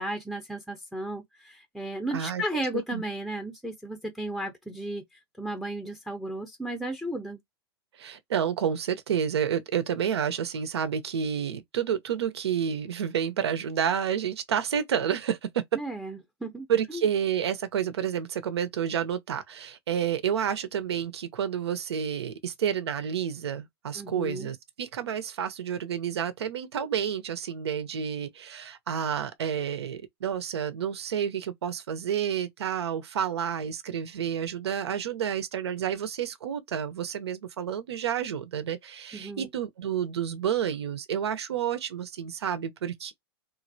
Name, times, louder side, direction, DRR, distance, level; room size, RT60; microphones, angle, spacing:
voice 1, 0.0-5.0 5.4-7.4 15.7-17.0 24.0-24.5 39.1-39.5, right 1 dB, ahead, 0.5 m, -34 dB
voice 2, 2.1-3.0 8.0-15.6 16.7-43.1, right 8 dB, 85° right, 0.7 m, -30 dB
3.2 x 2.5 x 2.6 m
hypercardioid pair, 115°, 13 cm